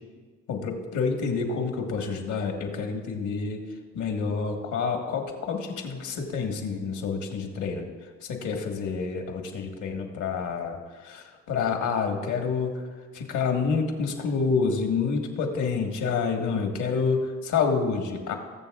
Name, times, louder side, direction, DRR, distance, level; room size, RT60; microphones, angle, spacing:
voice 1, 0.5-3.7 3.9-7.9 8.3-12.8 13.1-18.3, left 5 dB, 75° left, 3 dB, 1.5 m, -28 dB
20.0 x 7.2 x 2.4 m, 1.5 s
cardioid pair, 90°, 30 cm